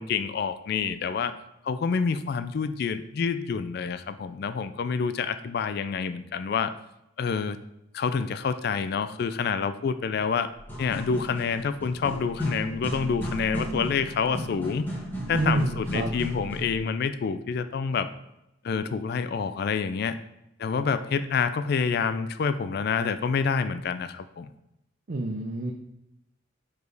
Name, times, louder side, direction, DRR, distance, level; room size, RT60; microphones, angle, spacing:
voice 1, 0.0-1.3 1.6-6.7 7.2-7.6 7.9-10.5 10.8-14.9 15.3-18.1 18.6-20.2 20.6-24.5, left 5 dB, 50° left, 11 dB, 0.3 m, -28 dB
sound 1, 10.5-16.8, equal, 10° left, 1.3 m, -34 dB
voice 2, 15.3-16.1 25.1-25.7, right 2 dB, 45° right, 2 dB, 0.5 m, -28 dB
4.9 x 4.9 x 3.9 m, 0.85 s
head